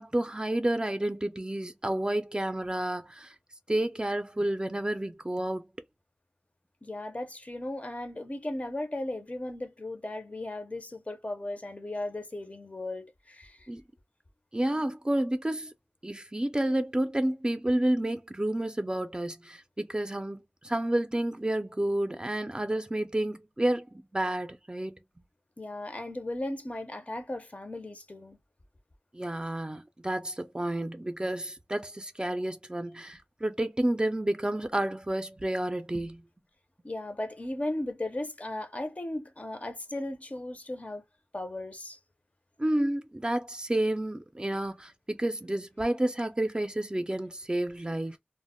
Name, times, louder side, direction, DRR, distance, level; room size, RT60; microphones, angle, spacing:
voice 1, 0.0-3.3 3.7-5.7 13.7-13.8 14.5-15.7 16.0-23.9 24.1-25.0 29.1-36.2 42.6-48.2, right 1 dB, 25° right, 0.4 m, -30 dB
voice 2, 6.8-13.7 25.6-28.4 36.8-41.0 41.3-42.0, left 1 dB, 40° left, 0.5 m, -36 dB
2.0 x 2.0 x 3.5 m
wide cardioid pair, 65°, 4 cm